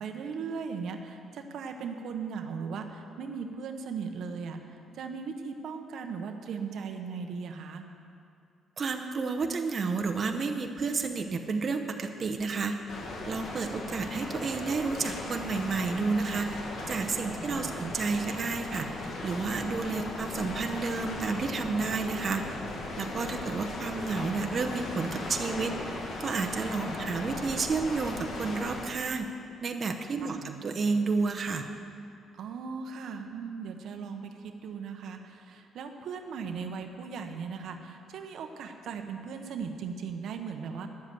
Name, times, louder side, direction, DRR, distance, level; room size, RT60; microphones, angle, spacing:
voice 1, 0.0-4.6 4.9-7.9 17.4-17.9 26.9-27.1 30.2-30.7 32.4-40.9, right 5 dB, 75° right, 5 dB, 0.9 m, -38 dB
voice 2, 8.8-12.8 13.3-16.6 16.9-18.9 19.2-22.4 23.0-25.7 26.2-29.3 29.6-31.6, right 4 dB, 45° right, 3 dB, 0.8 m, -31 dB
sound 1, 12.9-28.9, left 2 dB, 65° left, 1.7 m, -38 dB
10.5 x 7.5 x 8.0 m, 2.5 s
cardioid pair, 90°, 0 cm